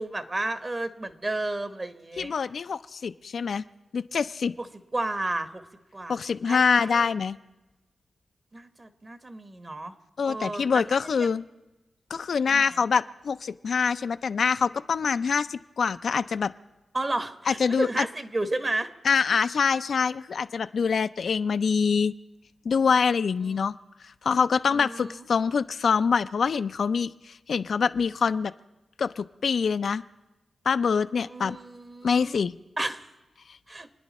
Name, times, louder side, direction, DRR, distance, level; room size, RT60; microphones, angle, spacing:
voice 1, 0.0-2.3 4.6-4.7 4.9-5.6 5.9-6.2 6.5-7.1 8.5-9.9 10.2-10.8 11.2-11.3 12.5-12.8 16.9-18.9 19.3-19.4 23.5-23.6 24.7-25.2 31.3-32.4 32.8-33.0 33.7-33.9, right 2 dB, 35° right, 9 dB, 1.3 m, -32 dB
voice 2, 2.2-3.6 3.9-4.5 6.1-7.4 10.2-11.4 12.1-16.5 17.5-18.1 19.0-22.1 22.6-23.7 24.2-27.1 27.5-28.5 29.0-30.0 30.7-31.6 32.0-32.5, left 6 dB, 70° left, 11 dB, 0.4 m, -25 dB
28.5 x 9.9 x 4.2 m, 1.0 s
cardioid pair, 65°, 0 cm